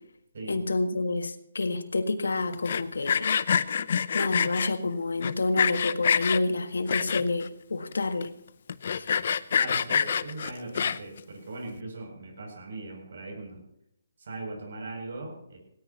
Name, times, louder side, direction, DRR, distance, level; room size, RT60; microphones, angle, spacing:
voice 1, 0.5-3.4 4.1-8.4 9.0-9.1, left 3 dB, 80° left, 1.7 m, -28 dB
Sawing, 2.5-4.7 5.2-6.4 6.9-7.5 7.9-8.0 8.2-8.3 8.7-11.2, left 7 dB, 55° left, 0.7 m, -26 dB
voice 2, 9.5-13.6 14.2-15.6, right 2 dB, 60° right, 7.4 m, -39 dB
18.0 x 18.0 x 3.0 m
hypercardioid pair, 150°, 0 cm